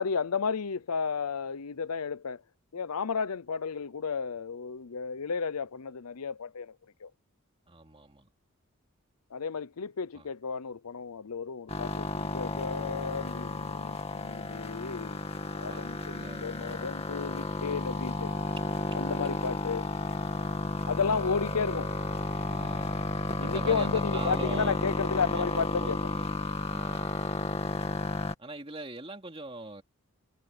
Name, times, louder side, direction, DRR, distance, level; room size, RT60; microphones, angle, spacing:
voice 1, 0.0-2.4 2.7-6.7 7.0-7.1 9.3-15.2 15.5-18.3 18.9-19.9 20.9-21.9 23.4-26.0, left 5 dB, 90° left, 0.7 m, -33 dB
voice 2, 7.7-8.3 10.1-10.3 15.7-16.9 22.4-23.1 23.4-24.8 25.2-26.3 26.7-27.2 28.4-29.8, right 2 dB, 25° right, 2.7 m, -43 dB
sound 1, 11.7-28.3, left 2 dB, 25° left, 2.2 m, -33 dB
head